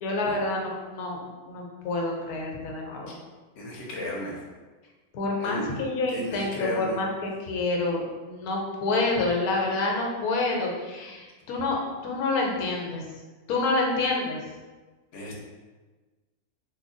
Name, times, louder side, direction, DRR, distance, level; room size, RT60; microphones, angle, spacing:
voice 1, 0.0-1.2 1.5-3.2 5.1-13.0 13.5-14.4, left 2 dB, 85° left, 0 dB, 1.1 m, -28 dB
voice 2, 3.6-4.4 5.4-5.6 6.1-7.0 15.1-15.4, left 1 dB, 55° left, -2 dB, 0.9 m, -34 dB
3.1 x 2.3 x 3.5 m, 1.3 s
omnidirectional pair, 1.6 m